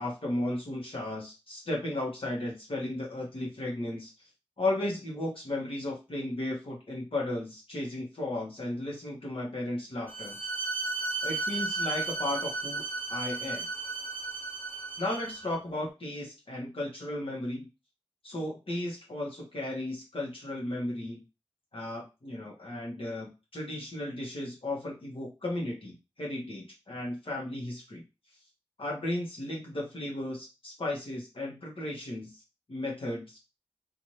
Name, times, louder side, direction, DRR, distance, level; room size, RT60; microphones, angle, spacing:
voice 1, 0.0-4.1 4.6-10.4 11.2-12.8 13.1-13.7 15.0-17.7 18.2-21.2 21.7-28.0 28.8-32.4 32.7-33.4, left 1 dB, 60° left, -3 dB, 1.0 m, -35 dB
Bowed string instrument, 10.1-15.6, right 3 dB, 20° left, 0.7 m, -34 dB
2.7 x 2.5 x 3.0 m, 0.27 s
wide cardioid pair, 45°, 10 cm